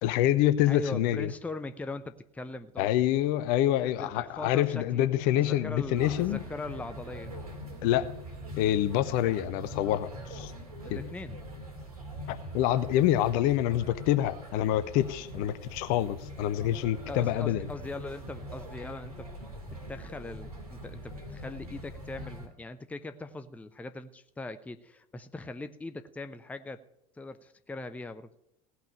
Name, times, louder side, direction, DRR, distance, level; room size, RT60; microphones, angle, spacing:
voice 1, 0.0-1.3 2.8-6.4 7.8-8.1 8.6-10.5 10.9-11.0 12.3-17.7, left 12 dB, 50° left, 12 dB, 0.9 m, -26 dB
voice 2, 0.7-2.9 3.8-5.0 5.4-7.3 10.8-11.4 17.1-19.3 19.7-26.8 27.2-28.3, left 2 dB, 5° left, 10 dB, 0.7 m, -40 dB
sound 1, 2.1-9.0, right 2 dB, 15° right, 2.7 m, -55 dB
sound 2, 5.9-22.5, equal, 75° right, 2.8 m, -43 dB
17.0 x 5.9 x 10.0 m, 0.81 s
figure-of-eight pair, 75°, 19 cm